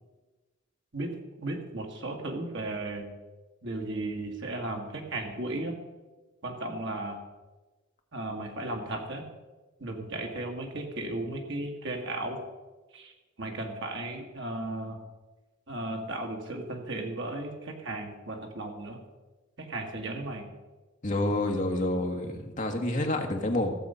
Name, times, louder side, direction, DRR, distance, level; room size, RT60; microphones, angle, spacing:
voice 1, 0.9-3.1 3.6-5.7 6.4-7.2 8.1-9.2 9.8-12.4 12.9-15.0 15.7-19.0 19.6-20.5, right 2 dB, 60° right, 2 dB, 1.7 m, -35 dB
voice 2, 21.0-23.7, left 1 dB, 35° left, 2 dB, 1.4 m, -28 dB
15.5 x 6.9 x 5.5 m, 1.2 s
head